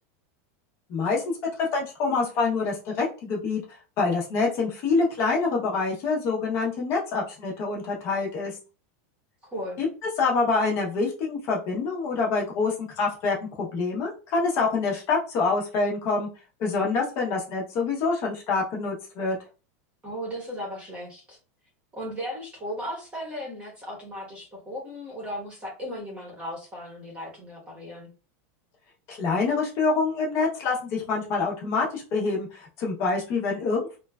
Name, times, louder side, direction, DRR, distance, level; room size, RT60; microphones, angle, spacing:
voice 1, 0.9-1.2 1.6-3.6 4.0-8.6 9.8-9.9 10.2-16.3 16.6-19.4 29.1-34.0, left 4 dB, 35° left, -2 dB, 0.7 m, -26 dB
voice 2, 9.4-9.8 20.0-21.4 22.0-28.1, equal, 15° right, -1 dB, 0.9 m, -36 dB
3.0 x 2.2 x 2.3 m, 0.34 s
supercardioid pair, 175°, 8 cm